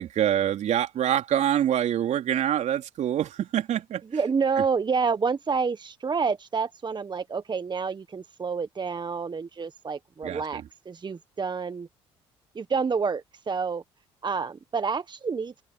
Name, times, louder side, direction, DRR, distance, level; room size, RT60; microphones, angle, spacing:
voice 1, 0.0-4.0 4.6-4.7 10.2-10.6, right 10 dB, 60° right, 3.5 m, -25 dB
voice 2, 4.1-11.9 12.5-13.8 14.2-15.6, right 5 dB, 35° right, 1.3 m, -28 dB
open air
hypercardioid pair, 55°, 14 cm